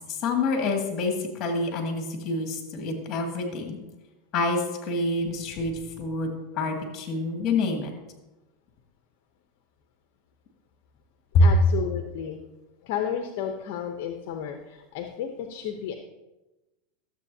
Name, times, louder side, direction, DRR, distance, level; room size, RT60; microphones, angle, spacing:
voice 1, 0.1-3.8 4.3-7.9 11.3-11.5, left 2 dB, 40° left, 2 dB, 2.1 m, -26 dB
voice 2, 11.4-12.4 12.8-15.9, left 8 dB, 60° left, 5 dB, 0.7 m, -32 dB
12.5 x 7.6 x 2.7 m, 1.1 s
supercardioid pair, 120°, 0 cm